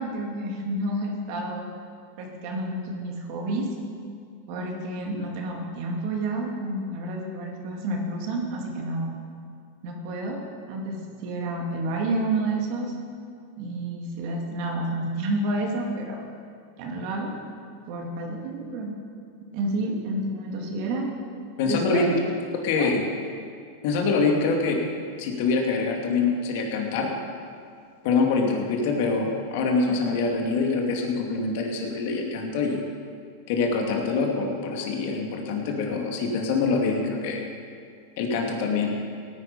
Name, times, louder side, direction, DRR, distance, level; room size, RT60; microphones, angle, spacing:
voice 1, 0.0-1.7 2.2-3.7 4.5-9.2 9.8-10.4 10.7-12.9 13.6-16.2 16.8-17.3 17.9-19.0 19.5-21.1 21.6-22.2 22.8-22.9 29.9-30.2, right 2 dB, 55° right, 0 dB, 3.0 m, -30 dB
voice 2, 21.6-22.1 22.6-23.0 23.8-24.8 25.2-27.1 28.0-32.8 33.5-37.4 38.2-39.0, left 4 dB, 60° left, 1 dB, 2.5 m, -25 dB
17.5 x 10.5 x 5.5 m, 2.3 s
hypercardioid pair, 120°, 0 cm